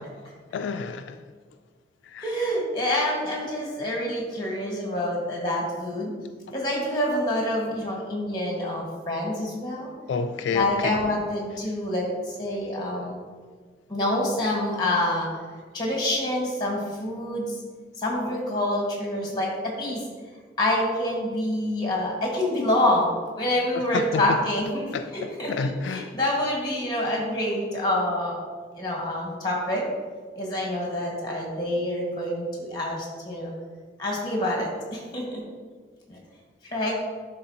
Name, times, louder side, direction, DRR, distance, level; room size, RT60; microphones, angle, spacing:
voice 1, 0.5-1.2 2.1-2.2 10.1-11.0 23.9-24.3 24.9-26.1, left 5 dB, 80° left, 8 dB, 0.3 m, -29 dB
voice 2, 2.2-6.1 6.5-9.9 10.5-13.2 13.9-15.3 15.7-17.6 18.0-20.0 20.6-28.4 28.7-29.8 30.3-33.5 34.0-35.4 36.1-36.2 36.7-36.9, left 1 dB, 25° left, -2 dB, 1.5 m, -27 dB
11.0 x 3.8 x 2.8 m, 1.5 s
head